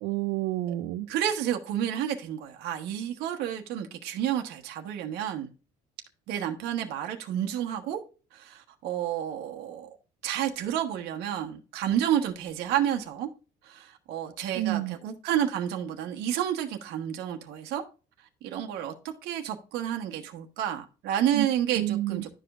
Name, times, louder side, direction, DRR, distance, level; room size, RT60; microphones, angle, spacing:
voice 1, 0.0-1.1 14.5-15.0 21.3-21.5 21.8-22.2, right 16 dB, 90° right, 0.4 m, -29 dB
voice 2, 1.1-5.5 6.3-8.0 8.3-10.0 10.2-13.3 13.6-17.8 18.4-22.4, right 10 dB, 75° right, 1.2 m, -30 dB
11.0 x 5.0 x 2.4 m
cardioid pair, 180°, 17 cm